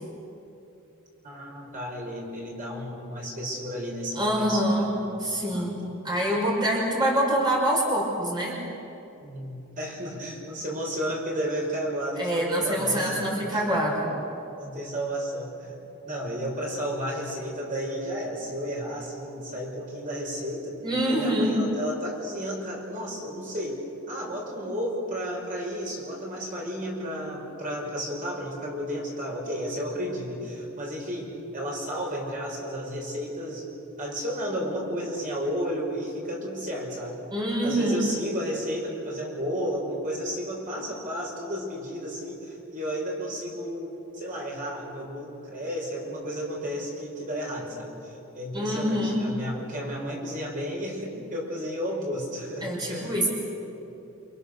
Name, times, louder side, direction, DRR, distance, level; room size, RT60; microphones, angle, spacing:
voice 1, 1.2-4.9 5.5-5.9 9.2-13.6 14.6-15.8 16.0-20.8 21.1-33.7 34.0-37.2 37.6-53.3, equal, 40° right, -2 dB, 5.5 m, -33 dB
voice 2, 4.2-4.9 5.2-5.7 6.0-8.6 12.2-14.1 20.8-21.6 37.3-38.1 48.5-49.2 52.6-53.3, right 1 dB, 20° right, -3 dB, 5.3 m, -25 dB
29.5 x 28.0 x 6.8 m, 2.9 s
head